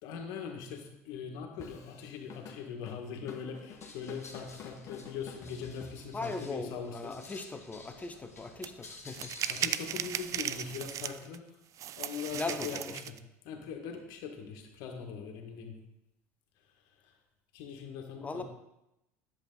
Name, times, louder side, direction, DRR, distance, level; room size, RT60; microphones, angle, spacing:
voice 1, 0.0-7.1 9.5-11.4 12.0-13.1 13.4-15.8 17.5-18.4, left 6 dB, 60° left, 3 dB, 1.6 m, -41 dB
Drum kit / Drum, 1.6-6.4, left 7 dB, 40° left, 1.4 m, -50 dB
sound 1, 3.7-10.9, left 3 dB, 90° left, 1.3 m, -52 dB
voice 2, 6.1-9.3 12.3-13.0 18.2-18.4, left 3 dB, 20° left, 7 dB, 1.0 m, -39 dB
sound 2, 8.6-8.7 9.1-11.4 11.8-13.2, right 11 dB, 40° right, 0.4 m, -36 dB
10.5 x 7.4 x 3.9 m, 0.86 s
figure-of-eight pair, 70°, 8 cm